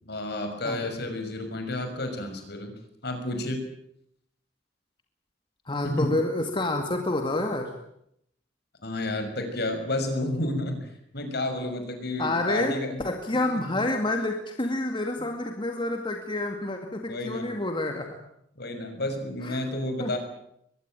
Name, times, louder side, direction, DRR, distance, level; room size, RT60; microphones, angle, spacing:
voice 1, 0.0-2.7 3.0-3.6 5.8-6.1 8.8-10.9 11.1-13.0 17.1-17.5 18.6-20.2, left 1 dB, 60° left, 6 dB, 6.3 m, -31 dB
voice 2, 5.7-7.7 12.2-18.2 19.4-19.6 20.0-20.1, left 2 dB, 25° left, 4 dB, 2.2 m, -28 dB
23.0 x 21.5 x 9.1 m, 0.74 s
head